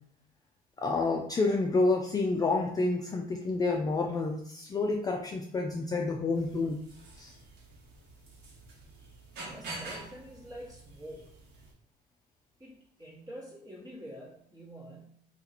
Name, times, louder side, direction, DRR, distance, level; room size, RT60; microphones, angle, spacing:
voice 1, 0.8-6.8 7.2-7.3, left 3 dB, 20° left, 1 dB, 0.3 m, -29 dB
sound 1, 6.3-11.7, right 2 dB, 75° right, 1.2 m, -47 dB
voice 2, 9.3-11.3 12.6-15.1, equal, 20° right, -3 dB, 1.2 m, -47 dB
2.7 x 2.4 x 4.0 m, 0.68 s
cardioid pair, 110°, 17 cm